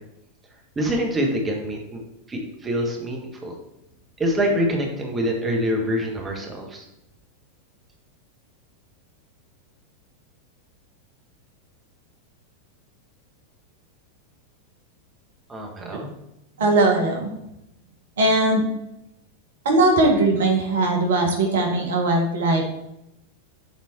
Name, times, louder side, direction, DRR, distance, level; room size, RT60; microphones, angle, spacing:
voice 1, 0.7-2.0 2.3-3.5 4.2-6.8 15.5-16.1, equal, 15° right, 1 dB, 1.4 m, -25 dB
voice 2, 16.6-17.3 18.2-18.6 19.6-22.7, right 2 dB, 60° right, 1 dB, 1.4 m, -19 dB
7.3 x 3.8 x 4.4 m, 0.83 s
figure-of-eight pair, 90°, 0 cm